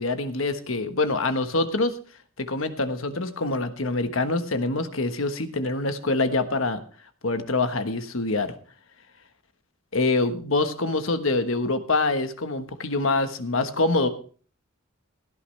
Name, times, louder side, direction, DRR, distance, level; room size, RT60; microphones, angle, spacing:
voice 1, 0.0-2.0 2.4-6.8 7.2-8.5 9.9-14.1, left 2 dB, 75° left, 9 dB, 1.3 m, -25 dB
17.0 x 12.0 x 3.3 m, 0.42 s
head